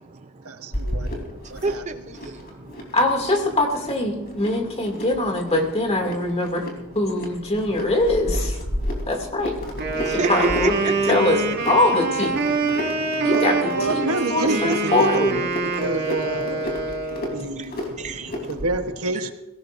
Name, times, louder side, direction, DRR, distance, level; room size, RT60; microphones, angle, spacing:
voice 1, 0.4-1.1 1.5-1.8 13.2-13.4 13.7-15.4 15.8-16.7 17.3-17.8 18.5-19.3, right 2 dB, 90° right, 7 dB, 1.2 m, -28 dB
sound 1, 0.7-18.7, left 1 dB, 45° left, 3.6 m, -33 dB
voice 2, 1.6-1.9 10.1-11.8 12.5-13.5 13.8-14.2 14.7-14.8 16.6-16.7 17.6-17.7 18.0-18.7 19.0-19.3, right 4 dB, 35° right, 8 dB, 0.6 m, -31 dB
voice 3, 2.9-6.7 6.9-8.6 9.1-9.5 9.9-11.4 11.7-12.4 13.2-15.4, left 2 dB, 30° left, 2 dB, 2.5 m, -23 dB
Wind instrument woodwind instrument, 9.7-17.4, right 3 dB, 50° right, 1.8 m, -25 dB
21.5 x 17.0 x 2.6 m, 1.0 s
head